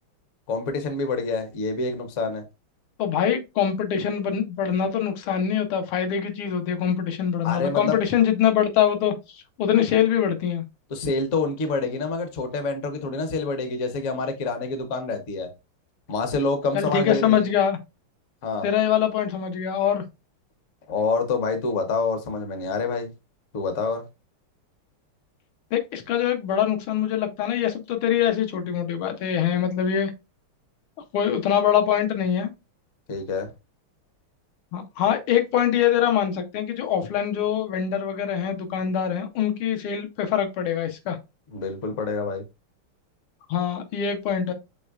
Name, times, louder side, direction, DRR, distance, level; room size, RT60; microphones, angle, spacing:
voice 1, 0.5-2.4 7.4-8.0 10.9-15.5 16.1-17.5 18.4-18.7 20.9-23.1 23.5-24.1 33.1-33.5 41.5-42.4, left 3 dB, 55° left, 0.8 m, -27 dB
voice 2, 3.0-9.1 9.6-10.6 16.7-17.8 18.6-20.0 25.7-30.1 31.1-32.5 34.7-41.2 43.5-44.5, left 9 dB, 80° left, 1.6 m, -23 dB
6.1 x 3.2 x 2.3 m
omnidirectional pair, 2.3 m